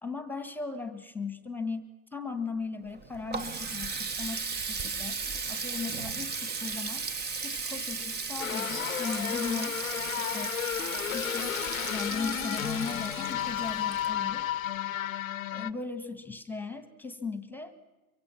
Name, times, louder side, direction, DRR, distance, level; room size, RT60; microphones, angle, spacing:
voice 1, 0.0-5.2 5.5-7.1 7.4-9.8 10.2-10.5 11.1-11.6 11.9-14.5 15.5-17.7, left 4 dB, 5° left, 11 dB, 1.7 m, -37 dB
Water tap faucet, 2.9-14.5, right 5 dB, 25° right, 1.2 m, -36 dB
sound 1, 8.4-15.7, left 12 dB, 70° left, 0.8 m, -33 dB
24.5 x 24.5 x 5.9 m, 1.2 s
figure-of-eight pair, 85°, 42 cm